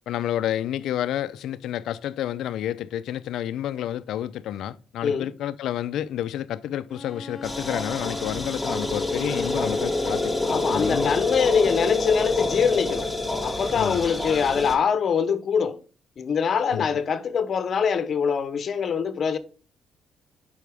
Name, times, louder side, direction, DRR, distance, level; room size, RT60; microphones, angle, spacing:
voice 1, 0.1-11.1 13.7-14.1 16.7-16.9, left 11 dB, 80° left, 0.5 m, -30 dB
Bowed string instrument, 6.9-11.3, left 2 dB, 20° left, 2.5 m, -38 dB
sound 1, 7.4-14.8, left 2 dB, 5° left, 1.8 m, -27 dB
voice 2, 10.4-13.1 13.4-15.8 16.2-19.4, left 6 dB, 55° left, 0.9 m, -23 dB
9.3 x 5.7 x 3.5 m
cardioid pair, 90°, 0 cm